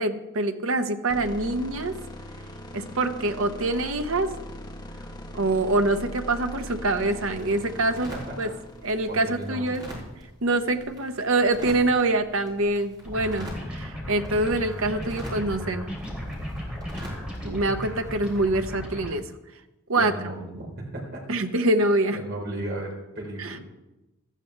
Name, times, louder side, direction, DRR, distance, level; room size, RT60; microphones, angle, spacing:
voice 1, 0.0-1.9 2.7-4.3 5.3-8.1 8.4-8.5 8.8-9.9 10.4-15.8 17.4-19.3 19.9-20.2 21.3-22.2 23.4-23.6, right 2 dB, 70° right, 7 dB, 1.0 m, -25 dB
sound 1, 1.1-10.3, left 1 dB, 20° left, 1.5 m, -40 dB
sound 2, 6.5-18.6, equal, 20° right, 4.5 m, -44 dB
voice 2, 8.1-8.5 9.1-9.8 19.9-21.3 22.1-23.6, right 1 dB, 50° right, 0 dB, 3.9 m, -35 dB
sound 3, 13.0-19.1, equal, 5° right, 3.3 m, -35 dB
17.0 x 13.5 x 3.4 m, 1.0 s
head